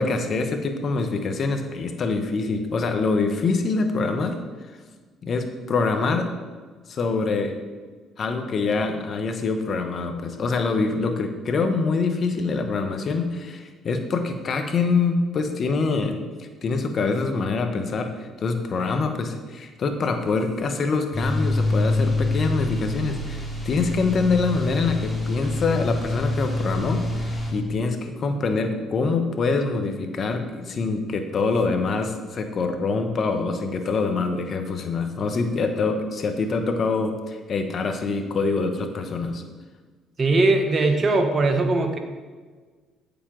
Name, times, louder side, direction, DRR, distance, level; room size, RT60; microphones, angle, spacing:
voice 1, 0.0-4.4 5.2-6.3 6.9-7.5 8.2-39.4, left 4 dB, 50° left, 6 dB, 1.1 m, -25 dB
sound 1, 21.1-27.5, left 2 dB, 10° left, 2.6 m, -26 dB
voice 2, 40.2-42.0, right 2 dB, 40° right, 6 dB, 1.1 m, -20 dB
8.7 x 6.9 x 3.9 m, 1.4 s
supercardioid pair, 65°, 0 cm